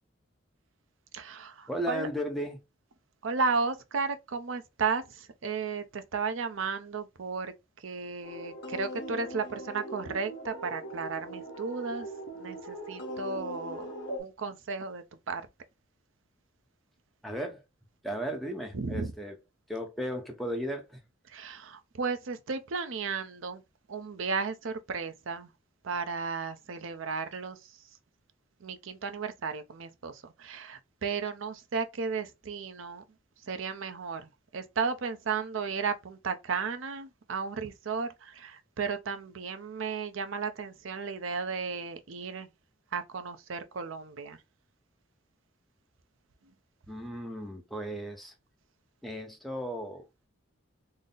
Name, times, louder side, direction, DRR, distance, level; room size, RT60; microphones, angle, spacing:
voice 1, 1.1-2.1 3.2-7.5 7.8-12.1 12.4-13.9 14.2-15.4 18.7-19.1 21.3-23.6 23.9-25.5 25.8-27.6 28.6-30.1 30.4-33.0 33.5-42.5 42.9-44.4, right 5 dB, 75° right, 0.5 m, -34 dB
voice 2, 1.7-2.6 17.2-17.6 18.0-19.4 19.7-21.0 46.9-48.3 49.0-50.0, equal, ahead, 0.7 m, -35 dB
sound 1, 8.2-14.2, right 1 dB, 60° left, 1.2 m, -40 dB
3.8 x 2.0 x 3.8 m
head